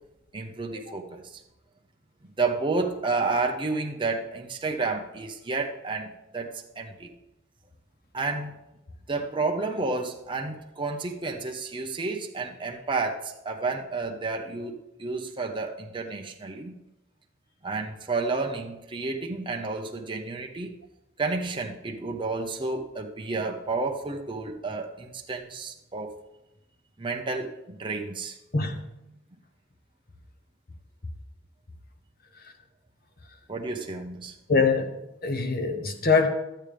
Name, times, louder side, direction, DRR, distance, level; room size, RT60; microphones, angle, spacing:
voice 1, 0.3-1.4 2.4-7.1 8.1-8.6 9.1-16.7 17.6-20.8 21.2-26.1 27.0-28.4 33.5-34.3, right 3 dB, 25° right, 1 dB, 0.8 m, -31 dB
voice 2, 28.5-29.1 34.5-36.3, left 4 dB, 50° left, 6 dB, 1.0 m, -24 dB
12.5 x 8.9 x 3.4 m, 0.92 s
head